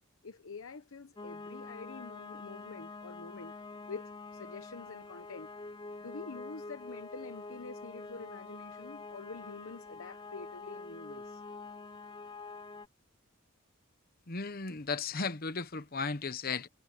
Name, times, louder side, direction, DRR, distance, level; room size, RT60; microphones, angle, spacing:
voice 1, 0.2-3.5 3.9-5.5 6.0-11.4, left 4 dB, 90° left, 1.0 m, -47 dB
sound 1, 1.2-12.9, left 3 dB, 20° left, 0.5 m, -46 dB
voice 2, 14.3-16.7, left 4 dB, 45° left, 1.1 m, -35 dB
head